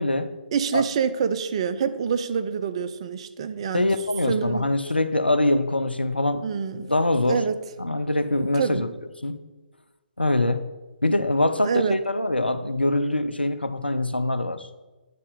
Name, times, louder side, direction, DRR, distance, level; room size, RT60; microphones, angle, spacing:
voice 1, 0.0-0.3 0.7-0.8 3.7-7.4 7.8-8.9 9.2-9.4 10.2-10.7 11.0-14.7, left 2 dB, 85° left, 10 dB, 0.6 m, -24 dB
voice 2, 0.5-3.9 4.3-4.7 6.4-6.9 7.3-7.6 8.5-8.9 11.6-12.0, right 6 dB, 35° right, 11 dB, 0.4 m, -26 dB
9.2 x 4.0 x 5.3 m, 1.2 s
figure-of-eight pair, 135°, 5 cm